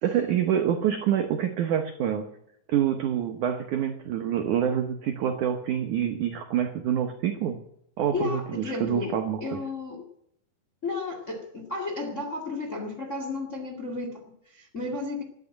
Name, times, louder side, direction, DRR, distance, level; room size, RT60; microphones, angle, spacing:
voice 1, 0.0-2.3 2.7-7.6 8.0-9.6, right 9 dB, 80° right, 6 dB, 1.8 m, -26 dB
voice 2, 8.1-10.1 10.8-15.2, left 3 dB, 35° left, 4 dB, 1.2 m, -33 dB
13.5 x 10.5 x 9.8 m, 0.73 s
omnidirectional pair, 5.1 m